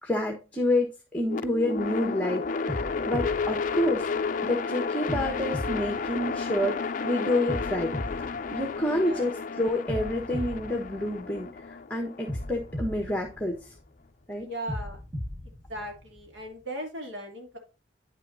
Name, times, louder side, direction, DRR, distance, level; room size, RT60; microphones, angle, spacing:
voice 1, 0.0-7.9 8.5-13.7 14.3-14.5, left 1 dB, 10° left, 2 dB, 1.2 m, -29 dB
sound 1, 1.3-13.4, left 5 dB, 45° left, 0.5 m, -32 dB
sound 2, 1.8-2.1 2.7-4.5 5.1-6.9 7.5-9.3 9.9-11.7 12.3-14.1 14.7-16.5, equal, 15° right, 1.7 m, -37 dB
voice 2, 8.9-9.3 14.4-15.0 15.4-17.6, right 1 dB, 70° right, 2 dB, 2.9 m, -38 dB
9.7 x 6.2 x 2.7 m, 0.32 s
head